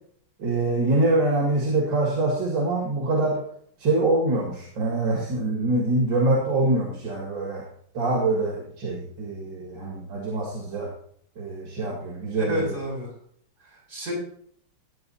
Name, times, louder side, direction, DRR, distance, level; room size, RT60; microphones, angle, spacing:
voice 1, 0.4-3.4 3.8-7.6 7.9-10.9 11.4-12.6, right 2 dB, 85° right, -2 dB, 2.6 m, -24 dB
voice 2, 12.4-13.1 13.6-14.1, equal, 55° right, -5 dB, 6.6 m, -30 dB
18.0 x 8.5 x 2.7 m, 0.63 s
omnidirectional pair, 2.0 m